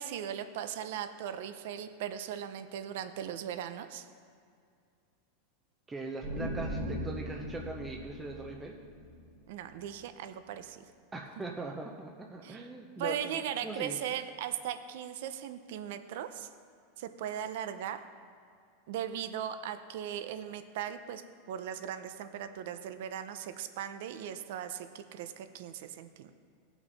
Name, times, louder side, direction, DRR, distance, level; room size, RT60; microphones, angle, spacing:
voice 1, 0.0-4.1 9.5-10.8 12.4-12.7 13.0-16.5 17.0-18.0 18.9-21.2 21.5-26.3, right 9 dB, 70° right, 10 dB, 0.6 m, -38 dB
voice 2, 5.9-8.8 11.1-14.0, right 2 dB, 15° right, 0 dB, 0.7 m, -41 dB
sound 1, 6.2-9.8, equal, 35° right, 2.2 m, -39 dB
16.5 x 5.9 x 4.0 m, 2.3 s
supercardioid pair, 135°, 0 cm